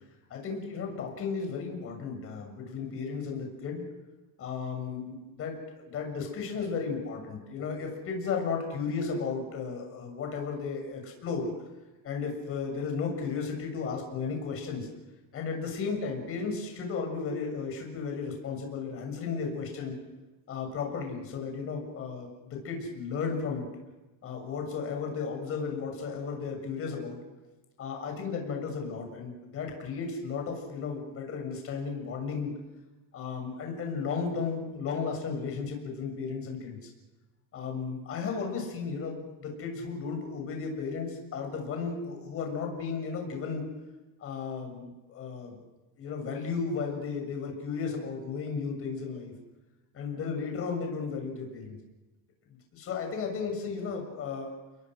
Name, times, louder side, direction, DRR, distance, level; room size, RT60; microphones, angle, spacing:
voice 1, 0.3-3.8 4.4-5.6 5.8-11.5 12.0-14.9 15.3-20.0 20.5-23.7 24.2-27.2 27.8-32.5 33.1-36.8 37.5-43.6 44.2-45.6 46.0-49.3 49.9-51.8 52.7-54.5, left 5 dB, 30° left, 3 dB, 6.9 m, -34 dB
30.0 x 22.0 x 6.3 m, 1.1 s
cardioid pair, 160°, 42 cm